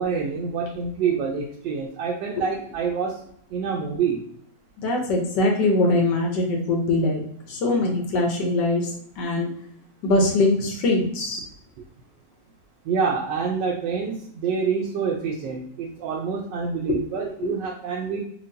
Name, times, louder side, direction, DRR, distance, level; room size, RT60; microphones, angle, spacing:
voice 1, 0.0-3.2 3.5-4.3 12.8-18.2, right 5 dB, 80° right, -1 dB, 1.2 m, -27 dB
voice 2, 4.8-7.2 7.5-9.5 10.0-11.4 16.9-17.0 17.4-17.5, left 2 dB, 75° left, 1 dB, 1.4 m, -22 dB
4.6 x 2.5 x 2.6 m, 0.65 s
omnidirectional pair, 1.9 m